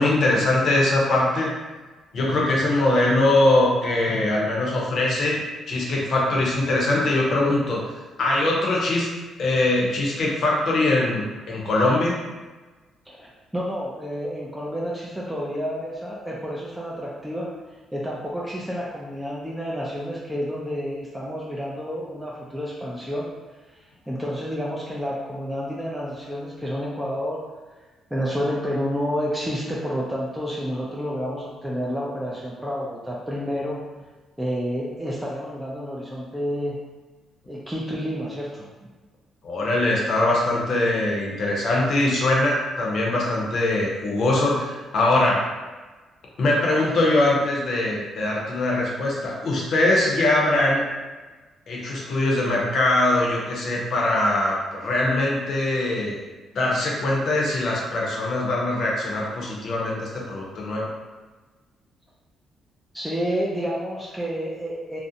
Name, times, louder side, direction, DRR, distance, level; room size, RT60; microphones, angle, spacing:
voice 1, 0.0-1.5 2.1-5.4 5.7-7.8 8.2-9.1 9.4-12.1 39.4-45.5 46.4-50.9 51.7-56.2 56.5-60.9, left 2 dB, 60° left, -3 dB, 0.6 m, -22 dB
voice 2, 13.1-17.5 17.9-23.3 24.1-27.5 28.1-33.9 34.4-36.8 37.5-38.7 62.9-65.0, equal, 5° right, -5 dB, 0.3 m, -29 dB
2.5 x 2.0 x 2.7 m, 1.3 s
cardioid pair, 90°, 0 cm